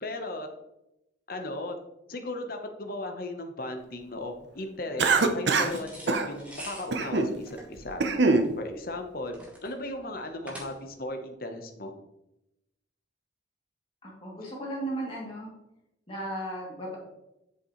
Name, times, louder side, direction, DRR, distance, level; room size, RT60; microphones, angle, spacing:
voice 1, 0.0-0.5 1.3-1.8 2.1-8.0 8.6-9.4 9.6-11.9, left 2 dB, 50° left, 5 dB, 1.0 m, -36 dB
Cough, 5.0-5.8 6.1-6.3 6.9-7.3 7.8-8.5, right 3 dB, 65° right, 0.7 m, -23 dB
sound 1, 5.6-11.1, equal, 5° right, 1.4 m, -46 dB
voice 2, 14.0-15.5 16.1-17.0, right 1 dB, 30° left, -4 dB, 2.6 m, -35 dB
8.1 x 7.1 x 3.1 m, 0.89 s
head